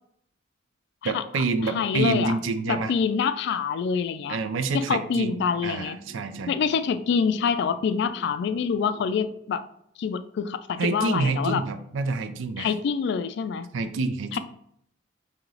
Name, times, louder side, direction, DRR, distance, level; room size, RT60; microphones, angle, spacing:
voice 1, 1.0-2.9 4.3-6.6 10.8-12.7 13.7-14.4, right 3 dB, 80° right, 11 dB, 0.4 m, -27 dB
voice 2, 1.7-2.4 2.7-4.4 4.7-6.0 6.5-9.6 10.0-11.6 12.6-13.7 14.3-14.4, left 6 dB, 60° left, 11 dB, 0.3 m, -26 dB
sound 1, 4.2-9.3, right 2 dB, 50° right, 1.0 m, -48 dB
3.8 x 2.8 x 3.1 m, 0.71 s
head